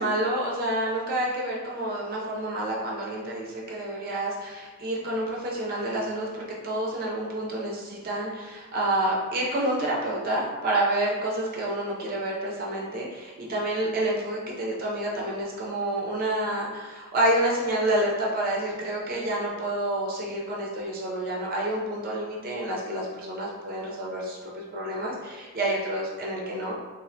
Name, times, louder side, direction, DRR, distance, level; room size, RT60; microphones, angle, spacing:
voice 1, 0.0-26.8, right 1 dB, 45° right, -3 dB, 0.4 m, -28 dB
3.1 x 2.4 x 2.5 m, 1.4 s
head